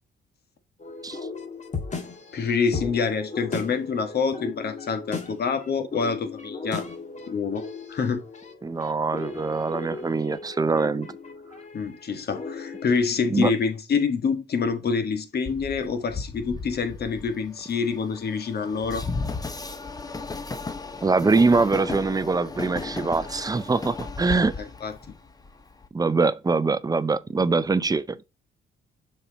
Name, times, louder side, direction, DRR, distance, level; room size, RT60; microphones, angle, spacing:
sound 1, 0.8-13.0, left 4 dB, 35° left, 1.6 m, -37 dB
voice 1, 2.3-6.9 7.3-7.6 7.9-8.2 11.7-19.1 24.8-24.9, left 5 dB, 55° left, 1.5 m, -26 dB
voice 2, 8.6-11.1 13.2-13.5 21.0-24.6 25.9-28.2, right 3 dB, 20° right, 0.6 m, -23 dB
Train, 15.5-25.9, left 3 dB, 20° left, 0.9 m, -35 dB
6.9 x 4.4 x 3.9 m
cardioid pair, 90°, 20 cm